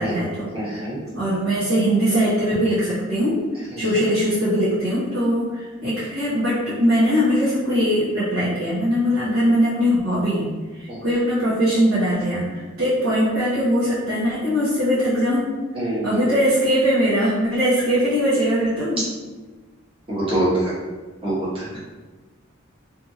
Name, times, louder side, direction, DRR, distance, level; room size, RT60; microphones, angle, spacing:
voice 1, 0.0-0.8 1.1-10.4 10.7-15.4 15.8-19.0, equal, 80° right, -11 dB, 0.9 m, -21 dB
voice 2, 0.5-1.0 3.7-3.8 10.9-11.0 15.7-16.2 20.1-20.7 21.2-21.8, right 1 dB, 25° right, -9 dB, 0.9 m, -25 dB
2.7 x 2.6 x 2.5 m, 1.3 s
head